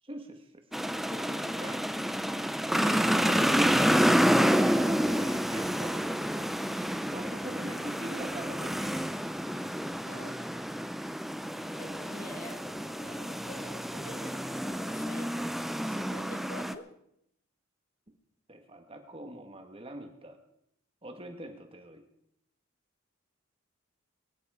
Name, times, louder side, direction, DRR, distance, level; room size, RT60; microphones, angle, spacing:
voice 1, 0.0-0.6 1.1-1.8 2.7-3.9 4.2-6.5 7.1-9.1 18.5-20.4 21.0-22.0, right 1 dB, 25° right, 5 dB, 1.5 m, -43 dB
sound 1, 0.7-16.7, equal, ahead, 0.4 m, -29 dB
voice 2, 0.9-1.7 10.0-10.4 11.6-15.4 15.9-16.9, left 1 dB, 40° left, 7 dB, 1.3 m, -47 dB
22.0 x 10.0 x 4.9 m, 0.75 s
head